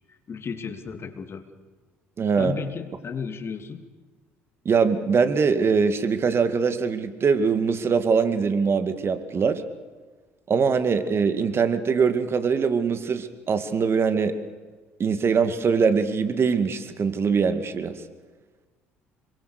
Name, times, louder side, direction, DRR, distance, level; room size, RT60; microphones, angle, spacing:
voice 1, 0.1-1.5 2.3-3.8, left 5 dB, 40° left, 6 dB, 2.8 m, -34 dB
voice 2, 2.2-2.5 4.7-9.6 10.5-14.3 15.0-17.9, right 5 dB, 40° right, 9 dB, 2.2 m, -22 dB
26.0 x 23.5 x 6.8 m, 1.4 s
hypercardioid pair, 55°, 6 cm